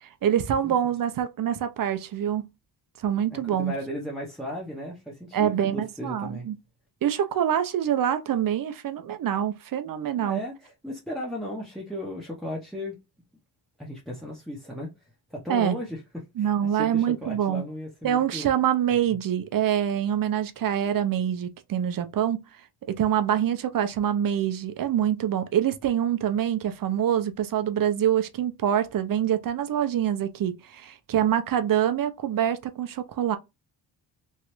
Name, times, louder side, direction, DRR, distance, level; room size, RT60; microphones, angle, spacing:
voice 1, 0.0-2.5 3.0-3.7 5.3-6.6 7.0-10.4 15.5-15.8 16.4-17.6 18.0-22.4 22.9-33.4, right 10 dB, 50° right, 0.5 m, -25 dB
voice 2, 3.3-6.5 10.1-13.0 13.8-14.9 15.3-18.5 19.1-19.2, equal, ahead, 0.6 m, -36 dB
3.1 x 2.4 x 2.9 m
wide cardioid pair, 120°, 43 cm